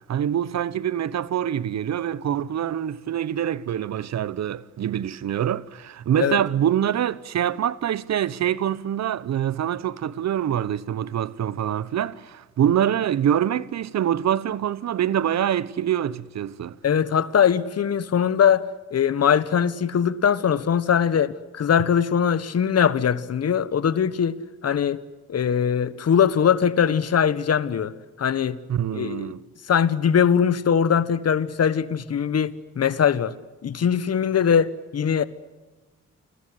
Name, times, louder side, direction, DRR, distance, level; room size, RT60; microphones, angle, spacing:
voice 1, 0.1-16.8 28.7-29.4, right 10 dB, 65° right, 1.1 m, -25 dB
voice 2, 16.8-18.7 18.9-25.0 25.3-27.9 28.2-28.6 28.9-29.3 29.7-33.3 33.6-35.2, left 8 dB, 60° left, 1.5 m, -21 dB
29.5 x 21.0 x 8.1 m
supercardioid pair, 55°, 29 cm